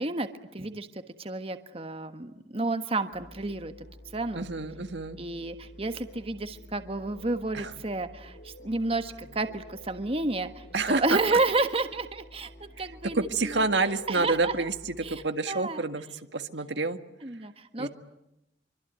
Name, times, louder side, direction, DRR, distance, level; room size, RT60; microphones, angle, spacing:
voice 1, 0.0-3.7 4.1-4.5 5.2-13.6 14.1-14.5 15.0-15.8 17.2-17.9, right 2 dB, 35° right, 8 dB, 1.4 m, -31 dB
sound 1, 3.1-15.3, equal, 80° left, 3.8 m, -49 dB
voice 2, 4.3-5.2 7.5-7.7 10.7-11.2 13.1-16.1 16.3-17.0 17.8-17.9, right 3 dB, 80° right, 8 dB, 1.8 m, -28 dB
26.0 x 24.5 x 9.3 m, 0.86 s
head